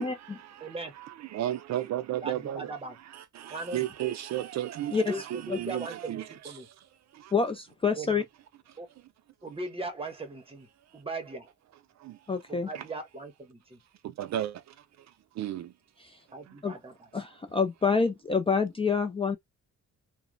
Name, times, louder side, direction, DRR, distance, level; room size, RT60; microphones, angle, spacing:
voice 1, 0.0-6.9 7.1-7.3 8.7-8.8 10.9-11.0 12.0-12.3 12.7-12.9 14.0-15.7 16.5-16.6, right 12 dB, 60° right, 0.4 m, -35 dB
voice 2, 0.6-0.9 2.2-2.9 3.5-3.8 5.0-6.7 8.0-8.2 8.8-8.9 9.4-11.5 12.5-13.8 16.3-16.9, right 2 dB, 20° right, 0.9 m, -39 dB
voice 3, 4.9-5.2 5.5-5.6 7.3-8.2 12.3-12.7 16.0-16.2 16.6-16.8 17.1-19.4, left 5 dB, 20° left, 0.4 m, -27 dB
2.8 x 2.1 x 2.5 m
cardioid pair, 115°, 31 cm